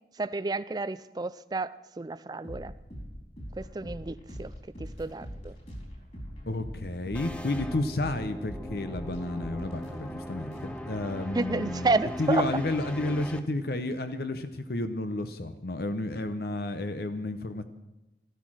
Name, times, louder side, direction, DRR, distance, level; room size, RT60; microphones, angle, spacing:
voice 1, 0.1-2.7 3.6-4.5 4.8-5.6 11.3-12.5, right 3 dB, 20° right, 15 dB, 0.4 m, -30 dB
sound 1, 2.4-12.1, equal, 40° left, 3.8 m, -43 dB
voice 2, 6.5-17.6, left 2 dB, 60° left, 9 dB, 0.8 m, -31 dB
sound 2, 7.1-13.4, equal, 5° left, 0.7 m, -40 dB
13.5 x 12.5 x 6.2 m, 0.96 s
head